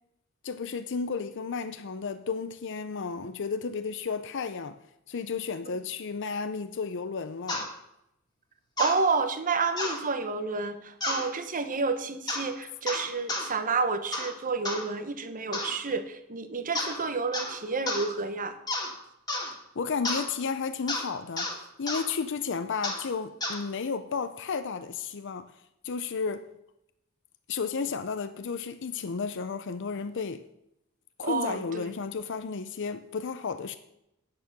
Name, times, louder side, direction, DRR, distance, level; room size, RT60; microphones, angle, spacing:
voice 1, 0.4-4.8 5.1-7.7 19.8-21.5 21.8-25.5 25.8-26.5 27.5-30.4 31.2-33.8, left 5 dB, 60° left, 0.6 m, -33 dB
sound 1, 7.5-7.7 8.8-9.0 9.8-10.0 11.0-11.3 12.3-12.5 12.9-13.5 14.1-14.3 14.6-14.8 15.5-15.8 16.7-17.0 17.3-17.6 17.9-18.1 18.7-18.9 19.3-19.5 20.0-20.3 20.9-21.1 21.4-21.5 21.9-22.0 22.8-23.0 23.4-23.6, left 2 dB, 20° left, 2.1 m, -31 dB
voice 2, 8.8-18.6 31.2-31.9, right 4 dB, 40° right, 1.0 m, -30 dB
9.4 x 9.0 x 6.0 m
head